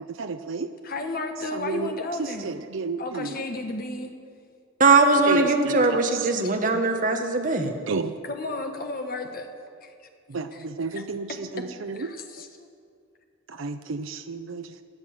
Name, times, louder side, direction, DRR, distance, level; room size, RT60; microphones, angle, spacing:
voice 1, 0.0-0.7 1.5-1.9 2.2-3.4 5.3-5.8 6.1-6.3 6.7-6.8 7.9-8.1 10.3-12.1 13.5-14.7, right 4 dB, 70° right, 8 dB, 0.6 m, -31 dB
voice 2, 0.8-2.5 3.0-4.1 8.2-9.5 9.8-9.9 10.5-10.6 10.9-11.0 11.6-11.7 11.9-12.5, left 2 dB, 45° left, 5 dB, 1.4 m, -33 dB
voice 3, 4.8-7.7, right 3 dB, 40° right, 4 dB, 1.4 m, -20 dB
16.5 x 10.5 x 7.2 m, 2.2 s
head